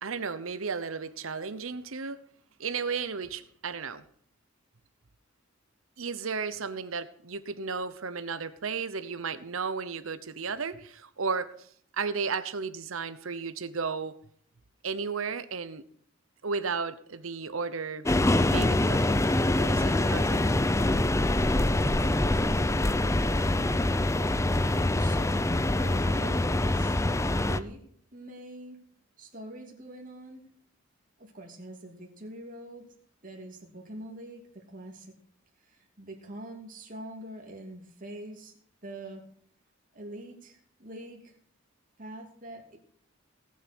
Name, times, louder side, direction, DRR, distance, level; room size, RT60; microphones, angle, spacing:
voice 1, 0.0-2.2 2.6-4.0 6.0-11.7 11.9-14.2 14.8-15.8 16.4-18.1 18.5-19.2 19.5-20.4 21.9-22.0, right 5 dB, 75° right, 0.9 m, -34 dB
sound 1, 18.0-27.6, left 1 dB, 15° left, 0.6 m, -25 dB
voice 2, 25.0-25.3 25.8-27.0 27.4-27.8 28.1-28.8 29.2-30.4 31.2-32.9 33.2-35.1 35.6-39.2 39.9-41.3 42.0-42.8, right 1 dB, 40° right, 2.8 m, -44 dB
18.5 x 7.6 x 6.1 m
head